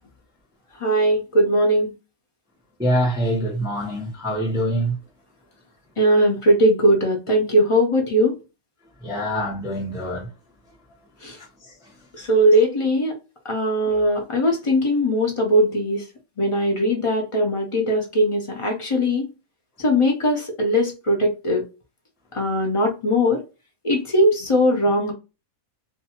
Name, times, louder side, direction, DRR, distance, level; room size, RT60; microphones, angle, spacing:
voice 1, 0.8-1.9 6.0-8.3 11.2-11.4 12.1-13.1 13.4-16.0 16.4-19.3 19.8-21.6 22.3-23.4 23.8-25.1, equal, 55° left, 0.3 m, -20 dB
voice 2, 2.8-5.0 9.0-10.3, equal, 5° right, 0.7 m, -24 dB
2.5 x 2.3 x 2.8 m
omnidirectional pair, 1.5 m